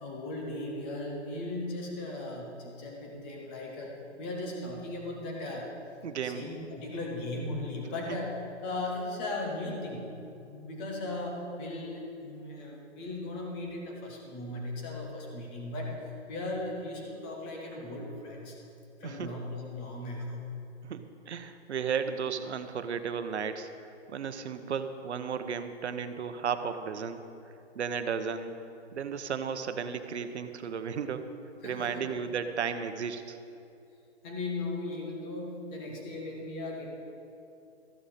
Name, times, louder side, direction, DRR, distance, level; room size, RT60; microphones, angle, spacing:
voice 1, 0.0-3.9 4.2-5.7 6.2-10.1 10.4-18.6 19.0-20.4 31.6-32.0 34.2-36.9, left 2 dB, 10° left, -1 dB, 0.7 m, -37 dB
voice 2, 6.0-6.5 19.0-19.3 20.8-23.7 24.1-27.2 27.7-28.6 28.9-31.3 31.6-33.4, right 6 dB, 70° right, 9 dB, 1.0 m, -34 dB
14.0 x 11.5 x 4.3 m, 2.7 s
hypercardioid pair, 165°, 36 cm